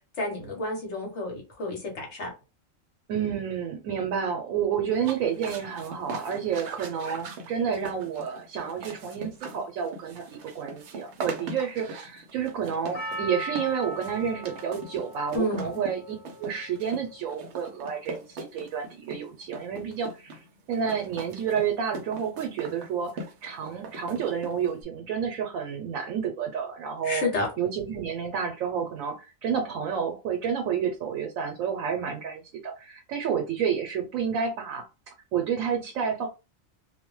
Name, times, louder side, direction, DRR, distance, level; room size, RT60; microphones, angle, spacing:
voice 1, 0.2-2.3 15.3-15.7 27.0-27.5, left 2 dB, 60° left, 1.1 m, -30 dB
voice 2, 3.1-27.3 27.6-34.8 35.3-36.3, right 7 dB, 90° right, 1.0 m, -30 dB
sound 1, 4.9-24.8, right 3 dB, 65° right, 0.8 m, -41 dB
Percussion, 12.9-17.3 17.9-18.0, right 1 dB, 30° left, 1.0 m, -39 dB
2.5 x 2.1 x 3.0 m
omnidirectional pair, 1.4 m